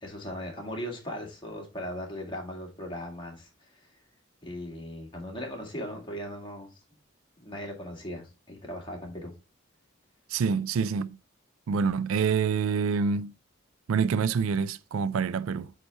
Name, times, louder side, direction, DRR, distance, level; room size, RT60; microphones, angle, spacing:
voice 1, 0.0-3.9 4.4-6.7 7.4-9.3, equal, 25° left, 1.8 m, -38 dB
voice 2, 10.3-11.2 11.7-13.3 13.9-15.7, right 6 dB, 80° right, 0.4 m, -26 dB
8.7 x 3.3 x 4.2 m
head